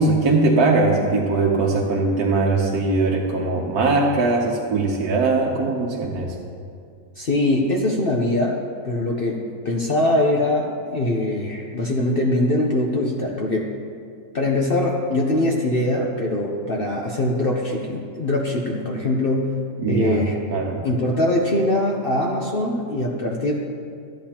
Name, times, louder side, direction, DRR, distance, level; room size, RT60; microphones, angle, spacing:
voice 1, 0.0-6.3 19.8-20.2 20.5-20.8, right 3 dB, 85° right, -2 dB, 1.3 m, -20 dB
voice 2, 7.2-8.6 8.8-9.4 9.6-13.7 14.3-19.5 19.9-20.4 20.8-23.5, left 1 dB, 45° left, -2 dB, 0.8 m, -22 dB
13.0 x 10.0 x 2.9 m, 2.3 s
omnidirectional pair, 1.5 m